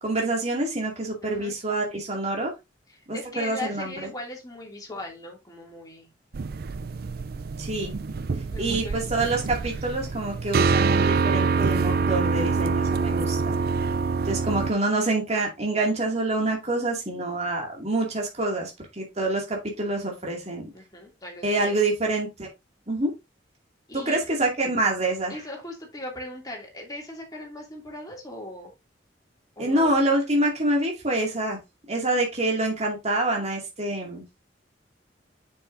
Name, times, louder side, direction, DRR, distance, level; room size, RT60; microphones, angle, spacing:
voice 1, 0.0-2.5 3.1-4.1 7.6-7.9 8.6-13.6 14.3-20.7 21.4-22.5 22.9-23.1 23.9-25.4 29.6-31.6 31.9-34.4, right 2 dB, 35° right, 2.3 m, -26 dB
voice 2, 1.2-1.5 2.9-6.1 8.3-8.9 9.2-9.3 20.7-21.8 23.9-24.2 25.3-28.7 29.6-29.9, left 1 dB, 20° left, 2.6 m, -39 dB
sound 1, 6.3-14.7, right 4 dB, 55° right, 0.5 m, -25 dB
7.2 x 6.3 x 2.6 m
head